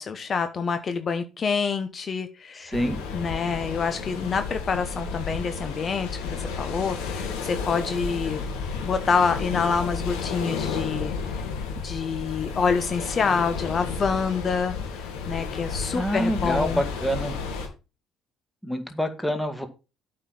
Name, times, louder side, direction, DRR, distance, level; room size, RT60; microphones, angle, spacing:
voice 1, 0.0-2.7 3.1-8.4 8.8-11.1 11.8-14.7 15.3-16.8, left 5 dB, 40° left, 9 dB, 1.1 m, -27 dB
voice 2, 2.6-3.0 15.9-17.3 18.6-19.7, equal, 5° left, 7 dB, 2.0 m, -26 dB
sound 1, 2.7-17.7, left 5 dB, 90° left, 3.0 m, -32 dB
8.3 x 5.5 x 5.9 m, 0.30 s
supercardioid pair, 85°, 0 cm